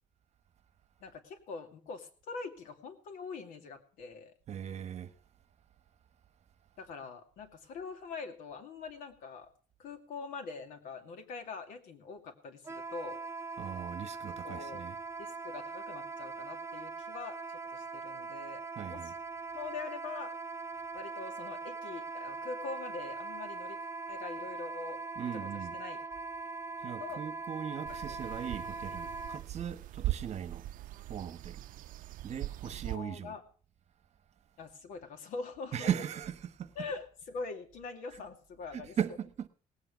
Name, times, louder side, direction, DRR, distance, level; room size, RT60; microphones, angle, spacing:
voice 1, 1.0-4.3 6.8-9.5 9.8-13.2 14.4-14.8 15.2-19.0 19.5-20.3 20.9-23.8 24.1-25.0 25.3-25.5 25.7-26.0 27.0-27.2 28.1-28.2 32.6-33.4 34.6-35.9 36.8-39.0, left 4 dB, 90° left, 2.5 m, -43 dB
voice 2, 4.5-5.2 13.6-15.0 18.7-19.1 25.2-25.8 26.8-30.7 31.1-31.6 32.2-33.4 35.7-36.7 38.1-38.2 38.7-39.5, right 9 dB, 50° right, 1.2 m, -38 dB
Wind instrument woodwind instrument, 12.6-29.4, right 4 dB, 20° right, 0.5 m, -41 dB
sound 1, 27.8-33.0, right 15 dB, 75° right, 0.5 m, -40 dB
18.5 x 9.0 x 5.0 m
cardioid pair, 120°, 14 cm